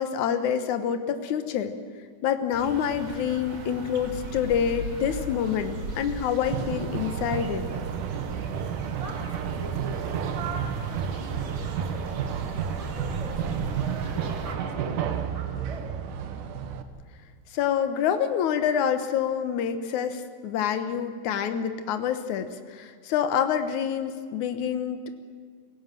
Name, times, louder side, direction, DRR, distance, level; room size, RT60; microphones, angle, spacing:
voice 1, 0.0-1.7 2.2-7.7 17.5-25.1, left 8 dB, 75° left, 9 dB, 1.8 m, -27 dB
sound 1, 2.5-14.5, right 2 dB, 40° right, 1.9 m, -38 dB
sound 2, 6.4-16.8, right 7 dB, 65° right, 2.2 m, -31 dB
voice 2, 8.9-12.3 12.7-15.9, right 3 dB, 10° right, 2 dB, 2.3 m, -42 dB
27.5 x 16.5 x 7.6 m, 2.1 s
omnidirectional pair, 5.1 m